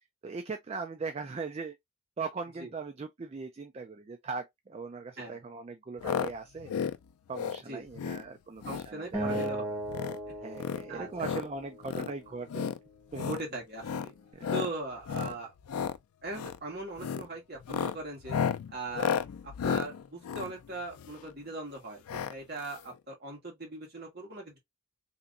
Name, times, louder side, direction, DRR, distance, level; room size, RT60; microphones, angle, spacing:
voice 1, 0.2-1.8 2.2-6.7 7.3-9.4 10.4-12.7 13.1-13.3 14.3-14.6, right 4 dB, 30° right, 0.3 m, -39 dB
sound 1, 6.0-6.3 6.6-7.0 7.3-7.6 7.9-8.2 8.6-8.9 9.2-9.5 9.8-10.2 10.5-11.5 11.8-12.1 12.5-12.8 13.1-13.4 13.8-14.1 14.4-14.7 15.0-15.3 15.6-16.0 16.3-16.6 17.0-17.2 17.6-21.3 22.1-22.3 22.6-22.7 22.9-23.0, left 7 dB, 80° left, 0.4 m, -33 dB
voice 2, 8.6-9.7 10.3-10.4 10.9-11.3 13.2-14.1 14.5-15.5 16.2-18.4 18.7-19.1 19.4-24.6, right 2 dB, 45° right, 1.6 m, -40 dB
Acoustic guitar, 9.1-12.4, right 1 dB, 5° right, 1.1 m, -37 dB
3.4 x 2.9 x 2.4 m
head